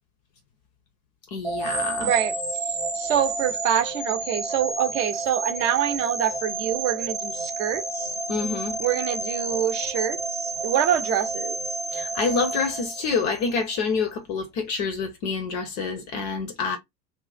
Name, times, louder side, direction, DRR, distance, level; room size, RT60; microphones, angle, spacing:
voice 1, 1.3-2.1 8.3-8.7 11.9-16.8, left 4 dB, 30° left, 0.4 m, -27 dB
sound 1, 1.4-13.6, right 3 dB, 15° right, 0.8 m, -30 dB
voice 2, 2.0-2.4 2.9-8.2 8.8-11.8, right 9 dB, 50° right, 0.7 m, -26 dB
2.4 x 2.1 x 3.8 m
figure-of-eight pair, 90°, 50 cm